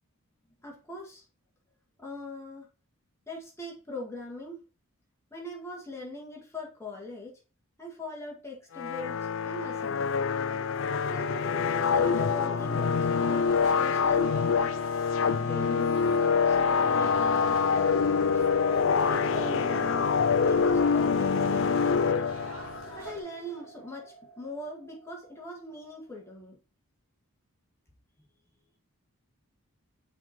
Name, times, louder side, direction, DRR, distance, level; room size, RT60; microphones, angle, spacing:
voice 1, 0.6-1.2 2.0-2.7 3.3-4.6 5.3-7.3 7.8-9.2 9.4-10.2 10.9-11.5 11.7-13.5 13.8-14.7 15.2-18.4 19.1-20.1 20.4-22.3 22.9-26.6, left 1 dB, 10° left, -2 dB, 2.1 m, -41 dB
sound 1, 8.7-22.9, left 5 dB, 60° left, 0.4 m, -25 dB
sound 2, 9.2-25.8, equal, 35° right, 3.4 m, -44 dB
sound 3, 13.4-23.2, right 1 dB, 70° right, 1.6 m, -48 dB
5.9 x 4.5 x 4.4 m, 0.34 s
head